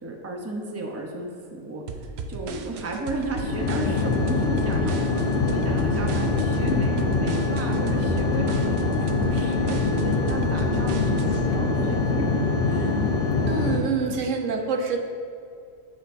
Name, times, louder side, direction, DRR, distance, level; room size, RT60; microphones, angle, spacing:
voice 1, 0.0-1.8 2.3-13.1, right 2 dB, 15° right, 0 dB, 0.7 m, -34 dB
sound 1, 1.9-11.5, right 5 dB, 65° right, 0.8 m, -36 dB
sound 2, 3.3-13.8, left 3 dB, 50° left, 0.9 m, -24 dB
voice 2, 13.5-15.0, right 5 dB, 80° right, 4 dB, 1.1 m, -26 dB
14.0 x 5.1 x 2.6 m, 2.3 s
omnidirectional pair, 1.3 m